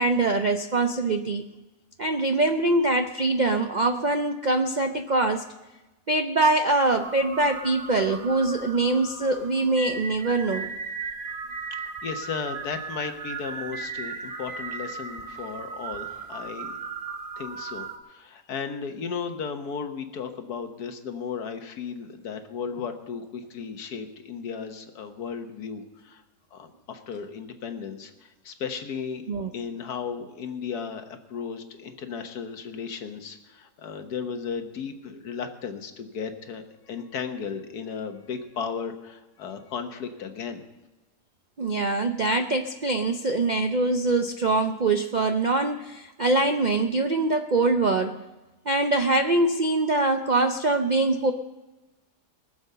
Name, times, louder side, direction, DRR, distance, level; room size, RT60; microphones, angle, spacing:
voice 1, 0.0-1.4 2.0-5.4 6.1-10.7 29.3-29.5 41.6-48.2 48.7-51.3, right 2 dB, 65° right, 6 dB, 0.4 m, -23 dB
sound 1, 6.8-18.0, right 4 dB, 40° right, 1.0 m, -37 dB
voice 2, 12.0-16.7 17.4-26.2 26.5-29.2 29.5-40.6, left 6 dB, 70° left, 7 dB, 1.7 m, -35 dB
19.5 x 7.1 x 6.7 m, 1.1 s
omnidirectional pair, 1.7 m